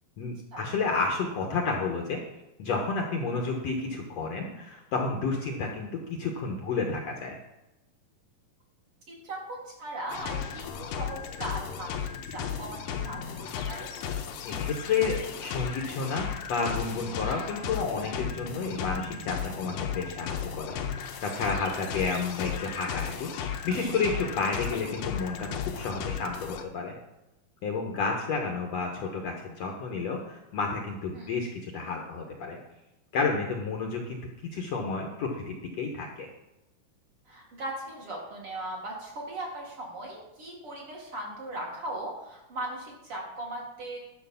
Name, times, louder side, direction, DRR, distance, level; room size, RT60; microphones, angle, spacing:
voice 1, 0.2-2.2 2.6-7.4 14.4-27.0 27.6-32.6 33.1-34.2 34.5-36.3, left 4 dB, 65° left, 1 dB, 1.7 m, -31 dB
voice 2, 9.2-13.9 22.0-22.1 31.1-31.3 37.3-44.0, right 1 dB, 45° right, -2 dB, 2.4 m, -38 dB
sound 1, 10.1-26.6, left 8 dB, 85° left, 2.6 m, -35 dB
11.0 x 5.1 x 6.9 m, 0.93 s
omnidirectional pair, 4.0 m